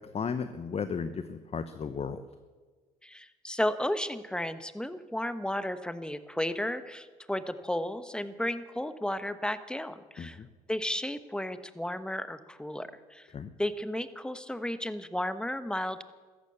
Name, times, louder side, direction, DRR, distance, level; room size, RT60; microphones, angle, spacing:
voice 1, 0.1-2.2 10.2-10.5 13.3-13.5, left 6 dB, 35° left, 11 dB, 0.9 m, -34 dB
voice 2, 3.0-10.4 10.7-13.3 13.6-16.0, left 1 dB, 5° left, 12 dB, 1.1 m, -33 dB
14.0 x 11.5 x 8.2 m, 1.4 s
hypercardioid pair, 60°, 17 cm